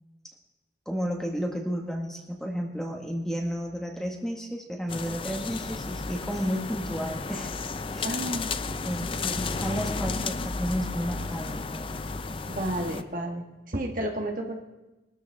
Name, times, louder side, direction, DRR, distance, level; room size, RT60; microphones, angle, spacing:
voice 1, 0.8-7.6 7.9-8.2 8.8-12.1, equal, 5° left, 0 dB, 1.7 m, -32 dB
sound 1, 4.9-13.0, left 4 dB, 30° left, 0.5 m, -33 dB
voice 2, 8.0-8.5 9.3-9.4 12.5-14.6, right 1 dB, 50° right, 1 dB, 1.6 m, -32 dB
22.5 x 13.5 x 3.6 m, 1.0 s
head